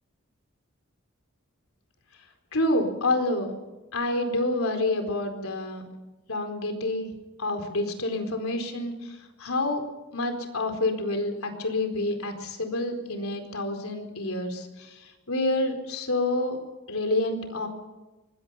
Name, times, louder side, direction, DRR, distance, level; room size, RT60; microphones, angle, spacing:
voice 1, 2.5-3.5 3.9-5.8 6.3-7.1 7.4-9.8 10.1-16.6 16.9-17.7, left 2 dB, 70° left, 5 dB, 4.4 m, -28 dB
24.5 x 21.5 x 5.8 m, 1.1 s
head